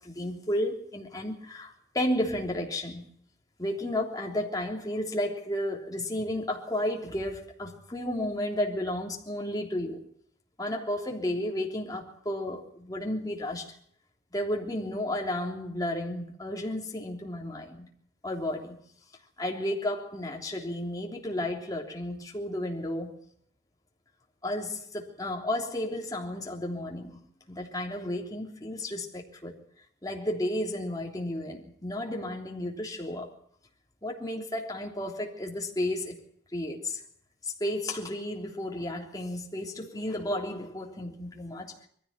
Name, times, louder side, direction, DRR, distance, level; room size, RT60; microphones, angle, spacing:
voice 1, 0.0-3.1 3.6-10.0 10.6-13.7 14.3-17.9 18.2-18.8 19.4-23.2 24.4-27.2 27.5-29.6 30.0-33.3 34.0-36.2 36.5-37.0 37.4-41.7, left 1 dB, 20° left, 3.3 m, -32 dB
22.0 x 15.5 x 7.5 m
head